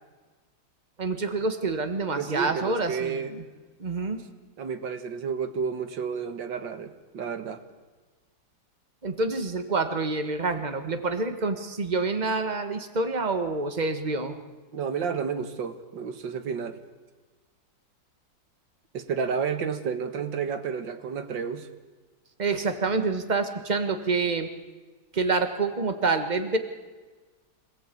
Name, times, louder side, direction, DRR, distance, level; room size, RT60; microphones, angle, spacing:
voice 1, 1.0-3.4 3.8-4.2 9.0-14.4 22.4-24.5 25.1-26.6, right 3 dB, 25° right, 8 dB, 1.5 m, -27 dB
voice 2, 2.2-3.3 4.6-7.6 14.7-16.8 18.9-21.7, right 6 dB, 80° right, 9 dB, 2.1 m, -31 dB
26.0 x 17.0 x 8.5 m, 1.3 s
omnidirectional pair, 2.0 m